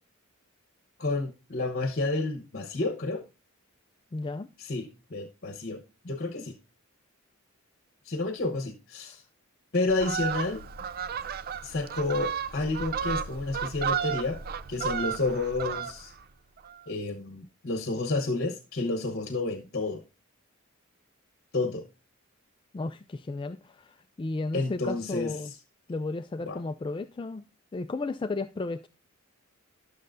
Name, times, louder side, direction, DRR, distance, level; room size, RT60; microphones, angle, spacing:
voice 1, 1.0-3.2 4.6-6.5 8.0-9.2 9.7-10.6 11.6-14.4 14.7-16.1 16.9-20.0 21.5-21.9 24.5-25.3 26.5-26.6, left 2 dB, 50° left, 1.0 m, -30 dB
voice 2, 4.1-4.5 9.1-9.2 22.7-25.5 25.9-27.4 27.7-28.9, left 3 dB, 25° left, 0.3 m, -34 dB
Fowl, 9.9-16.2 16.6-16.8, right 7 dB, 45° right, 0.4 m, -33 dB
12.5 x 6.6 x 2.6 m
head